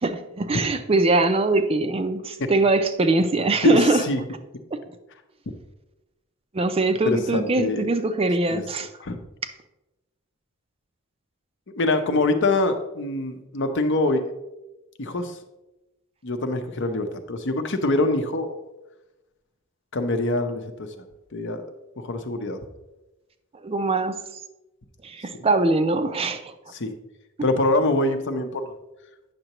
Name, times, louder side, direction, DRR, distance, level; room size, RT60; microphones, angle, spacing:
voice 1, 0.0-4.0 4.7-4.8 6.5-8.9 23.6-24.2 25.0-26.5, right 2 dB, 25° right, 8 dB, 0.4 m, -22 dB
voice 2, 3.6-4.2 7.0-7.9 8.5-8.6 9.0-9.2 11.7-14.2 15.0-15.4 16.2-18.6 19.9-21.0 21.3-21.6 22.0-22.6 26.7-26.9 27.4-28.7, left 2 dB, 60° left, 7 dB, 0.8 m, -24 dB
9.0 x 6.6 x 3.0 m, 0.99 s
head